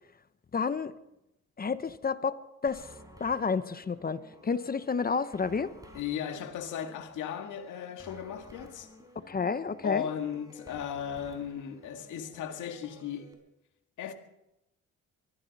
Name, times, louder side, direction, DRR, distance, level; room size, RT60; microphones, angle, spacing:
voice 1, 0.5-0.9 1.6-2.9 3.2-5.7 9.3-10.1, left 5 dB, 30° left, 0.9 m, -30 dB
sound 1, 2.7-13.3, equal, 10° right, 4.3 m, -53 dB
voice 2, 5.9-8.9 9.8-13.3 14.0-14.1, left 9 dB, 80° left, 2.0 m, -36 dB
23.5 x 14.5 x 4.2 m
cardioid pair, 90°, 30 cm